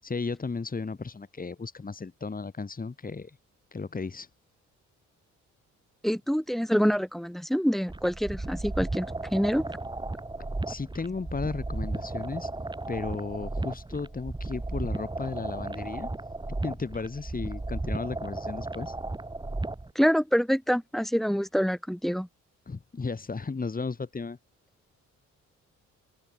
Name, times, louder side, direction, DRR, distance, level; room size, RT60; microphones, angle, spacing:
voice 1, 0.0-3.4 3.7-4.3 10.7-12.5 12.9-16.1 16.6-19.0 22.7-24.4, left 4 dB, 30° left, 7.5 m, -34 dB
voice 2, 6.0-9.6 19.9-22.3, equal, ahead, 1.0 m, -26 dB
sound 1, 7.9-19.9, right 2 dB, 15° right, 3.7 m, -35 dB
open air
cardioid pair, 90°, 30 cm